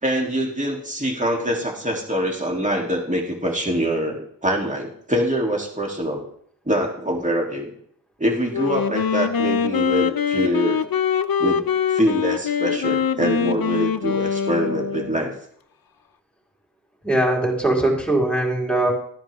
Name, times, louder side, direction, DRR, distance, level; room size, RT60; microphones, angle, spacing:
voice 1, 0.0-6.2 6.6-7.7 8.2-10.8 11.4-11.6 11.9-15.3, equal, 20° right, -1 dB, 3.0 m, -24 dB
Wind instrument woodwind instrument, 8.5-15.3, left 7 dB, 80° left, 0.8 m, -23 dB
voice 2, 17.0-18.9, right 1 dB, 5° left, -2 dB, 4.3 m, -20 dB
14.5 x 9.9 x 3.6 m, 0.63 s
wide cardioid pair, 85°, 35 cm